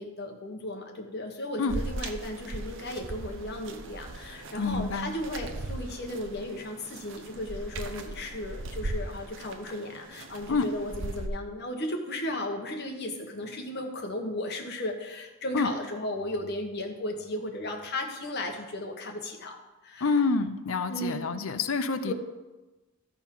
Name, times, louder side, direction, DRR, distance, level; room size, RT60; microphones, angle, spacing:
voice 1, 0.0-19.6 19.8-20.1 20.9-21.3 22.0-22.1, left 1 dB, 50° left, 2 dB, 1.3 m, -35 dB
sound 1, 1.7-11.3, right 2 dB, 65° right, 0.8 m, -38 dB
voice 2, 4.6-5.1 10.5-10.7 15.5-15.7 20.0-22.1, left 4 dB, 75° left, 11 dB, 0.7 m, -27 dB
13.5 x 4.6 x 5.5 m, 1.1 s
head